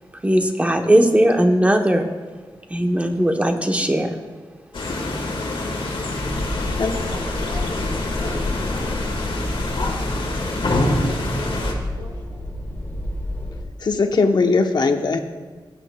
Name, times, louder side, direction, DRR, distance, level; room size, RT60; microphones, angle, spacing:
voice 1, 0.2-2.1 2.7-4.2, right 1 dB, 15° right, 5 dB, 0.8 m, -18 dB
sound 1, 4.7-11.7, left 2 dB, 80° left, 1.5 m, -26 dB
sound 2, 6.2-13.6, left 1 dB, 25° left, 1.8 m, -29 dB
voice 2, 6.6-8.4 9.7-10.9 11.4-12.5, right 2 dB, 60° right, 2 dB, 1.6 m, -43 dB
voice 3, 13.8-15.2, left 4 dB, 55° left, 6 dB, 0.8 m, -19 dB
16.5 x 9.2 x 2.2 m, 1.4 s
wide cardioid pair, 125°, 9 cm